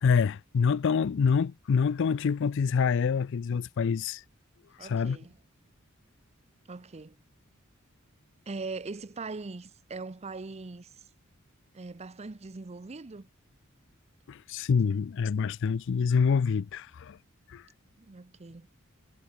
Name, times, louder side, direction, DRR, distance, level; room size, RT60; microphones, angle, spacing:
voice 1, 0.0-4.2 4.8-5.2 14.3-17.2 17.5-17.6, left 6 dB, 60° left, 0.4 m, -26 dB
voice 2, 4.8-5.4 6.7-7.2 8.5-11.0 11.7-13.3 18.0-18.7, right 3 dB, 30° right, 0.6 m, -41 dB
head